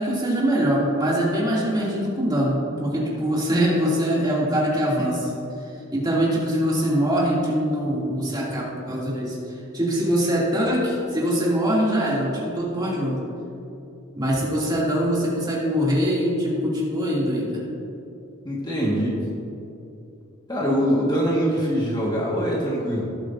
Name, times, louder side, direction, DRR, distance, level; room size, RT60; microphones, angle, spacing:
voice 1, 0.0-5.3 5.9-9.4 9.7-13.2 14.1-17.6, equal, 20° right, -6 dB, 2.5 m, -23 dB
voice 2, 18.4-19.2 20.5-23.0, equal, 20° left, -5 dB, 1.6 m, -23 dB
18.0 x 8.1 x 2.6 m, 2.7 s
head